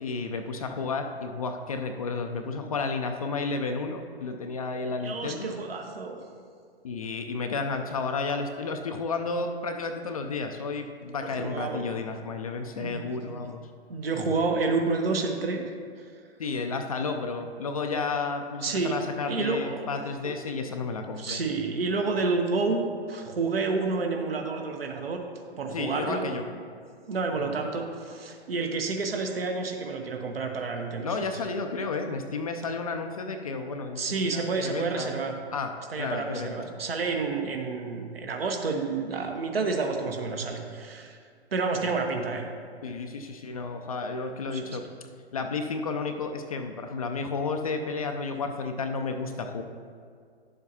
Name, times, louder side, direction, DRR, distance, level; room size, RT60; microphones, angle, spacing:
voice 1, 0.0-5.5 6.8-13.6 16.4-21.4 25.7-26.4 27.3-27.5 31.0-35.2 35.5-35.7 36.0-36.7 42.8-44.8 45.3-49.6, left 4 dB, 35° left, 5 dB, 0.4 m, -32 dB
voice 2, 5.0-6.2 11.4-11.9 12.8-13.5 13.9-15.6 18.6-19.0 19.2-19.9 20.2-20.3 21.2-25.2 25.6-26.3 27.1-31.3 34.0-35.3 35.9-41.2 41.5-42.5 44.5-44.8, right 4 dB, 60° right, 3 dB, 1.1 m, -29 dB
11.0 x 7.2 x 2.8 m, 2.2 s
figure-of-eight pair, 120°, 33 cm